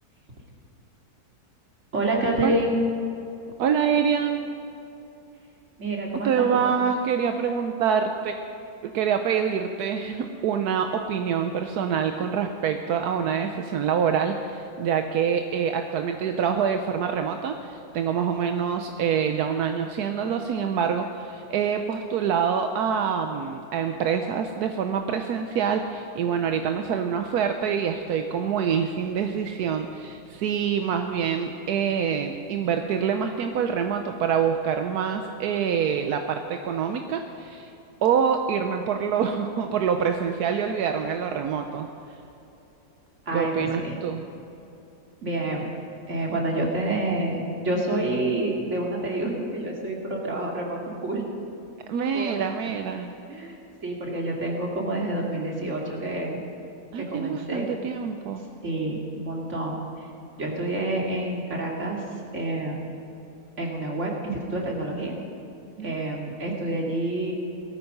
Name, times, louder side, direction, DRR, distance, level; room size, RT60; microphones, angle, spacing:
voice 1, 1.9-2.7 5.8-6.7 43.2-44.0 45.2-45.7 46.1-51.3 52.1-52.7 53.3-56.4 56.9-57.7 58.6-60.1 60.4-62.0 62.3-62.9 63.6-65.2 65.8-67.3, right 2 dB, 50° right, -1 dB, 2.8 m, -28 dB
voice 2, 3.6-4.4 6.2-8.3 8.8-37.7 38.0-41.9 43.3-44.2 51.9-53.1 56.9-58.4 65.8-66.0, right 7 dB, 80° right, 6 dB, 1.3 m, -26 dB
18.5 x 13.5 x 5.4 m, 2.9 s
omnidirectional pair, 1.6 m